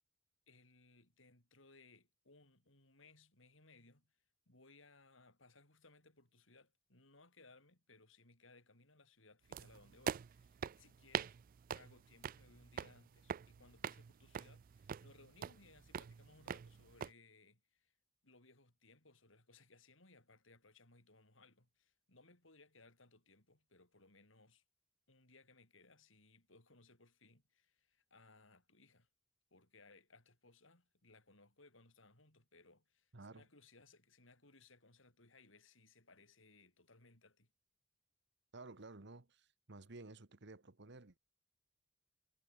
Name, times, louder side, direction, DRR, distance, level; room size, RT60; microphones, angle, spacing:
voice 1, 0.5-4.2 4.5-11.4 11.7-17.9 18.2-24.6 25.1-29.1 29.5-37.5, left 3 dB, 75° left, 7.1 m, -65 dB
sound 1, 9.5-17.1, right 7 dB, 45° right, 0.3 m, -45 dB
voice 2, 33.1-33.5 38.5-41.2, right 2 dB, 65° right, 1.4 m, -54 dB
head